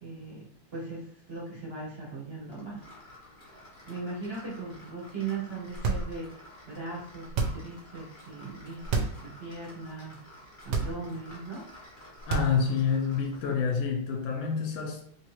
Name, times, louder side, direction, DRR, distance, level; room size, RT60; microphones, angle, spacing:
voice 1, 0.0-2.9 3.9-6.3 6.7-10.2 10.6-11.7, right 3 dB, 45° right, 0.8 m, -39 dB
sound 1, 2.5-13.6, left 1 dB, 30° left, 1.1 m, -51 dB
sound 2, 5.7-6.4 7.2-7.8 8.8-9.3 9.6-9.7 10.6-11.3 12.2-12.8, right 4 dB, 70° right, 1.0 m, -30 dB
voice 2, 12.3-15.0, left 6 dB, 75° left, 1.3 m, -28 dB
3.3 x 3.1 x 3.0 m
omnidirectional pair, 2.3 m